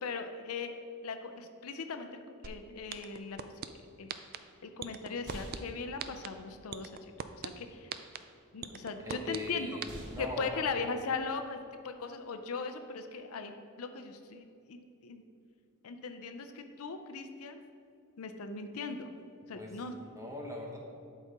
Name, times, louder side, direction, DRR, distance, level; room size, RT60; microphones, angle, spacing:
voice 1, 0.0-3.5 4.0-4.1 4.6-7.1 7.4-7.9 8.5-9.7 10.2-15.2 15.8-17.6 18.2-19.1 19.5-19.9, left 4 dB, 75° left, 7 dB, 0.5 m, -39 dB
sound 1, 2.4-2.5 2.9-3.7 4.1-4.4 4.8-5.6 6.0-6.3 6.7-7.5 7.9-8.2 8.6-9.4 9.8-9.9, right 8 dB, 45° right, 0.3 m, -37 dB
sound 2, 4.4-13.5, equal, 80° right, 2.0 m, -52 dB
voice 2, 9.0-10.6 19.5-20.8, left 1 dB, 15° right, 0 dB, 0.9 m, -41 dB
12.0 x 4.2 x 3.6 m, 2.4 s
head